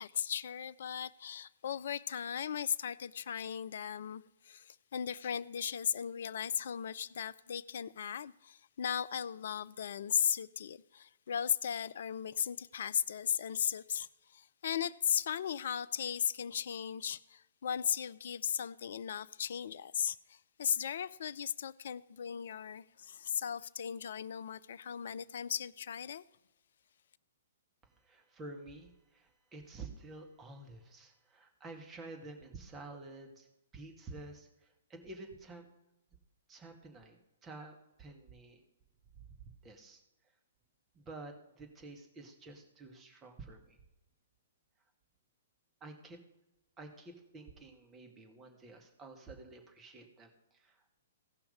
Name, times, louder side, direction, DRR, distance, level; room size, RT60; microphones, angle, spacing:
voice 1, 0.0-26.2, left 8 dB, 60° left, 0.4 m, -37 dB
voice 2, 27.8-33.5 33.7-35.7 36.5-38.6 39.3-39.4 39.6-40.3 40.9-43.8 45.8-46.2 46.8-50.8, right 3 dB, 20° right, 1.9 m, -50 dB
16.5 x 5.8 x 5.2 m
figure-of-eight pair, 120°, 0 cm